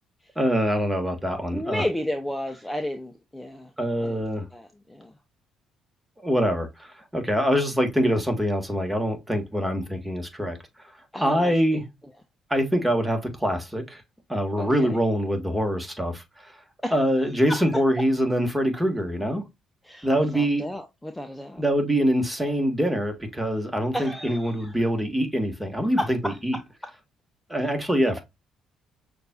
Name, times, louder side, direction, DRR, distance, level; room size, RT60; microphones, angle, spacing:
voice 1, 0.4-1.8 3.8-4.5 6.2-10.6 11.2-11.8 12.5-14.0 14.3-16.6 16.9-19.4 20.0-20.6 21.6-26.6 27.5-28.2, equal, 10° right, 1.7 m, -24 dB
voice 2, 1.5-3.7 4.0-5.1 7.5-7.6 11.1-11.8 14.6-15.0 16.8-17.0 17.5-17.6 19.8-21.6 22.4-22.5 23.9-24.8 26.0-26.4 26.8-26.9 27.6-27.7, left 1 dB, 10° left, 0.7 m, -33 dB
6.5 x 2.6 x 2.3 m
hypercardioid pair, 55°, 0 cm